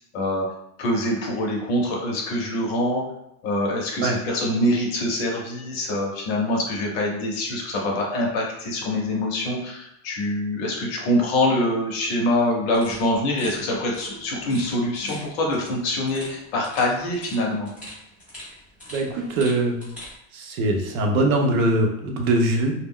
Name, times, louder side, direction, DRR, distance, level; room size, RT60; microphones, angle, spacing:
voice 1, 0.1-0.4 0.8-3.0 3.4-17.7, left 1 dB, 45° left, -1 dB, 0.6 m, -24 dB
sound 1, 12.7-20.1, left 1 dB, 5° right, 0.3 m, -43 dB
voice 2, 18.9-19.8 20.3-22.7, right 2 dB, 65° right, 2 dB, 0.7 m, -22 dB
2.2 x 2.1 x 3.5 m, 0.79 s
supercardioid pair, 175°, 45 cm